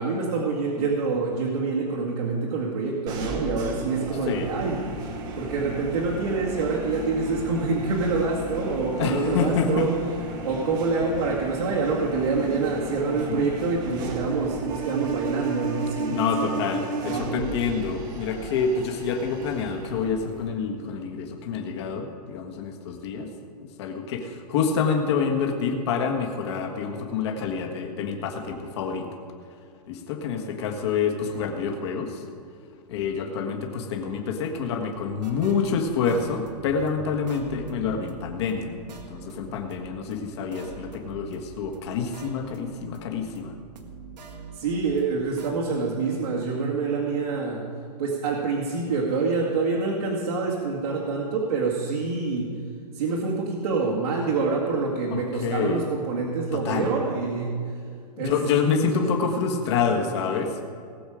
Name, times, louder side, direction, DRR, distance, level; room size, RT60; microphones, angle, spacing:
voice 1, 0.0-4.8 5.4-9.9 10.4-16.5 17.0-17.5 44.5-47.7 48.0-52.5 52.9-57.6 58.2-58.9, right 4 dB, 65° right, -5 dB, 2.1 m, -26 dB
sound 1, 3.1-20.5, right 2 dB, 20° right, 1.0 m, -34 dB
voice 2, 9.0-9.9 13.1-13.5 16.1-23.3 23.6-29.1 29.9-32.2 32.9-38.7 39.1-43.5 55.1-55.8 56.5-56.9 58.2-60.6, left 5 dB, 40° left, 2 dB, 1.6 m, -27 dB
sound 2, 34.9-45.5, right 3 dB, 90° right, 1.6 m, -44 dB
19.0 x 7.3 x 5.0 m, 2.3 s
hypercardioid pair, 165°, 21 cm